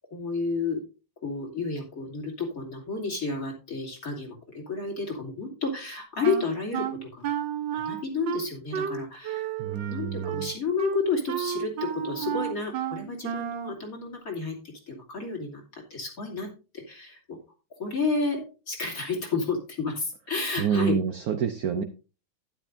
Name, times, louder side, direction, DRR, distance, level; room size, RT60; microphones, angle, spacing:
voice 1, 0.1-0.8 1.2-7.3 7.7-9.5 9.9-17.4 17.8-21.0 21.8-21.9, left 4 dB, 40° left, -1 dB, 3.1 m, -31 dB
Wind instrument woodwind instrument, 6.2-13.8, right 9 dB, 65° right, 1.4 m, -32 dB
voice 2, 9.6-10.5 20.6-21.8, right 7 dB, 80° right, 9 dB, 0.8 m, -27 dB
12.5 x 10.5 x 2.6 m, 0.33 s
omnidirectional pair, 2.4 m